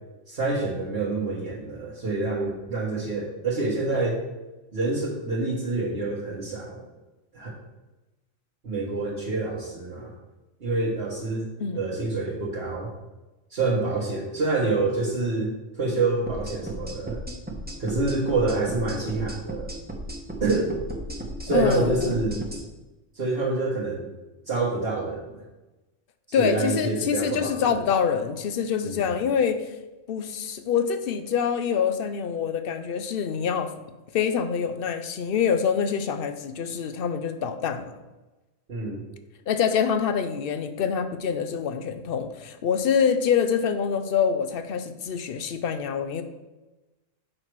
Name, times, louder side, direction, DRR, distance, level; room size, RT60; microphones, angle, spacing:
voice 1, 0.3-4.2 4.7-6.8 7.3-7.6 8.6-10.1 10.6-12.9 13.5-17.2 17.8-19.7 20.4-20.7 21.4-22.5 23.1-24.1 24.5-25.4 26.4-27.8 28.8-29.1 38.7-39.0, right 3 dB, 50° right, -6 dB, 1.6 m, -27 dB
sound 1, 16.3-22.6, right 1 dB, 10° right, 1.1 m, -35 dB
voice 2, 21.5-22.1 26.3-29.6 30.1-33.7 34.1-37.9 39.5-46.2, left 7 dB, 55° left, 9 dB, 0.8 m, -25 dB
7.9 x 5.8 x 4.6 m, 1.1 s
omnidirectional pair, 1.3 m